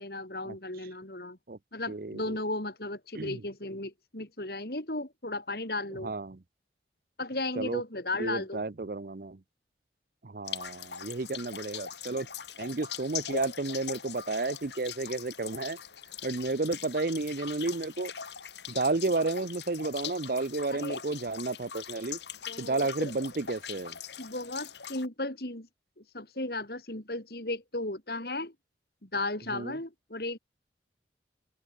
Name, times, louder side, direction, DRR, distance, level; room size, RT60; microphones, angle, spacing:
voice 1, 0.0-1.4 1.7-6.1 7.2-8.6 20.7-21.0 22.5-23.1 24.2-25.7 26.0-28.5 29.0-30.4, left 2 dB, 55° left, 3.4 m, -35 dB
voice 2, 1.9-2.4 3.2-3.4 6.0-6.4 7.6-7.8 8.2-9.4 10.2-12.3 12.6-15.8 16.2-18.1 18.7-22.2 22.6-24.0 29.5-29.8, right 3 dB, 50° right, 0.7 m, -32 dB
sound 1, 10.5-25.1, left 8 dB, 75° left, 3.1 m, -41 dB
open air
head